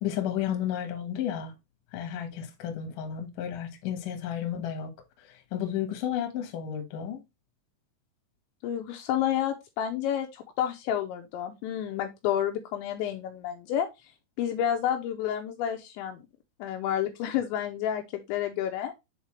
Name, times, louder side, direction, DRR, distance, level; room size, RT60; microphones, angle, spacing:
voice 1, 0.0-1.5 1.9-4.9 5.5-7.2, left 10 dB, 65° left, 2.2 m, -32 dB
voice 2, 8.6-13.9 14.4-16.2 16.6-18.9, left 10 dB, 80° left, 2.8 m, -30 dB
8.0 x 4.1 x 3.1 m
omnidirectional pair, 5.6 m